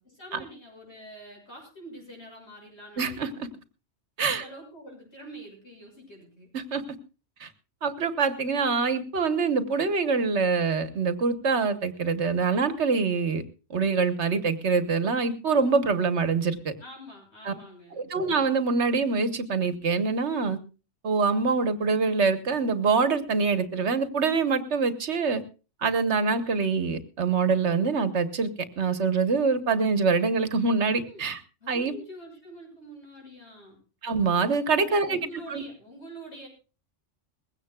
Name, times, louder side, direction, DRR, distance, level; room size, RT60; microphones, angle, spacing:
voice 1, 0.1-3.5 4.2-6.5 16.8-18.0 31.0-31.2 31.6-33.8 34.8-36.5, right 1 dB, 70° left, 1 dB, 7.1 m, -45 dB
voice 2, 3.0-3.3 4.2-4.4 6.5-6.8 7.4-7.5 7.8-13.4 13.7-16.7 17.4-17.5 18.0-20.6 21.0-25.4 25.8-28.5 28.8-31.4 31.7-31.9 34.0-35.6, right 4 dB, 70° right, 11 dB, 1.5 m, -25 dB
21.0 x 16.5 x 2.3 m, 0.33 s
omnidirectional pair, 1.2 m